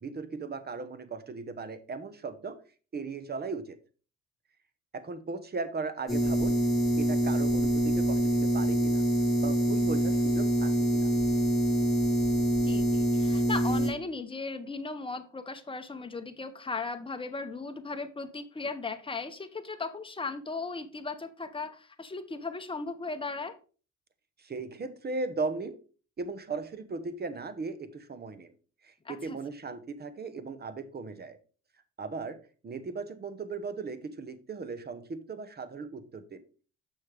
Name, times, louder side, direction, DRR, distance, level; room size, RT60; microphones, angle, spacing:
voice 1, 0.0-2.6 2.9-3.8 4.9-6.6 7.0-9.0 9.4-11.1 24.4-25.8 26.2-28.5 28.8-31.4 32.0-32.4 32.6-36.4, right 4 dB, 30° right, 12 dB, 0.9 m, -37 dB
sound 1, 6.1-13.9, right 1 dB, ahead, 3.4 m, -25 dB
voice 2, 12.6-23.6 29.0-29.4, left 3 dB, 15° left, 7 dB, 0.9 m, -37 dB
6.5 x 6.3 x 3.4 m, 0.37 s
cardioid pair, 90°, 30 cm